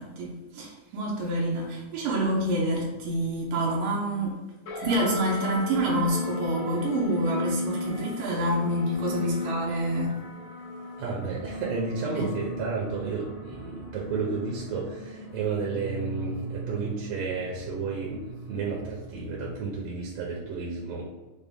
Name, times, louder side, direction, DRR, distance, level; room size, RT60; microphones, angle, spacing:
voice 1, 0.0-4.4 4.8-10.2 12.2-12.3, right 1 dB, 85° right, -3 dB, 2.2 m, -27 dB
sound 1, 4.7-19.4, left 1 dB, 80° left, 2.5 m, -36 dB
voice 2, 11.0-21.0, right 4 dB, 70° right, -3 dB, 1.7 m, -32 dB
6.3 x 2.2 x 3.5 m, 1.1 s
omnidirectional pair, 3.3 m